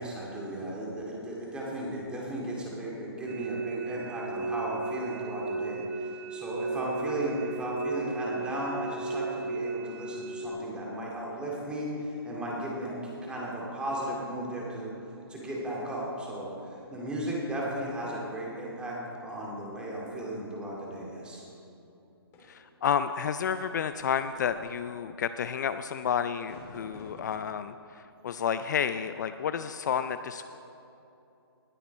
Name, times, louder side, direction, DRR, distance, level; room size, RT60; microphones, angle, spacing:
voice 1, 0.0-12.9 13.2-14.9 15.3-21.4, right 1 dB, 5° right, -4 dB, 2.5 m, -35 dB
sound 1, 3.3-10.5, right 3 dB, 45° right, 1.0 m, -35 dB
sound 2, 22.3-22.7 23.8-25.1 26.5-27.4, left 1 dB, 20° left, 2.9 m, -51 dB
voice 2, 22.4-30.5, left 8 dB, 45° left, 11 dB, 0.4 m, -31 dB
19.0 x 8.6 x 4.2 m, 2.8 s
hypercardioid pair, 150°, 13 cm